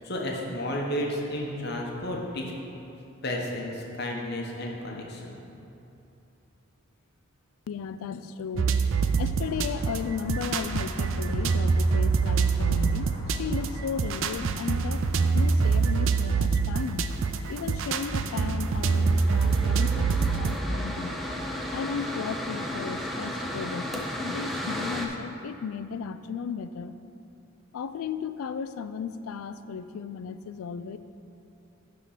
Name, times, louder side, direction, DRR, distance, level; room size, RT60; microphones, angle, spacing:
voice 1, 0.0-2.5 3.2-5.4, left 1 dB, 50° left, -1 dB, 1.0 m, -32 dB
voice 2, 7.7-8.7 9.2-15.0 15.3-17.1 17.5-21.2 21.7-26.9 27.7-31.0, left 6 dB, 80° left, 12 dB, 0.3 m, -35 dB
sound 1, 8.6-20.6, right 4 dB, 65° right, 0.4 m, -25 dB
sound 2, 9.4-14.4, equal, 50° right, 1.3 m, -41 dB
Mechanical fan, 18.0-25.1, left 1 dB, ahead, 0.4 m, -34 dB
10.5 x 3.8 x 5.7 m, 2.8 s
head